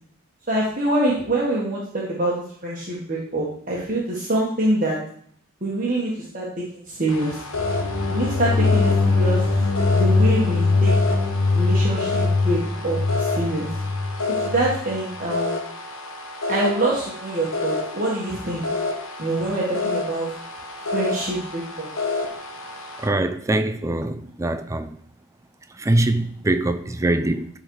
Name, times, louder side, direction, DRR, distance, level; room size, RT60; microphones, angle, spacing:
voice 1, 0.5-5.0 5.6-6.5 6.9-7.4 8.1-9.4 9.9-10.9 11.5-13.7 14.3-15.5 16.5-18.7 19.2-20.3 20.9-21.9, right 1 dB, 40° right, 1.4 m, -25 dB
sound 1, 7.1-23.1, left 3 dB, 80° left, 1.3 m, -30 dB
sound 2, 7.5-14.8, left 3 dB, 50° left, 0.9 m, -21 dB
voice 2, 23.0-25.0 25.8-27.5, right 1 dB, 15° right, 0.4 m, -23 dB
11.5 x 4.0 x 4.7 m
head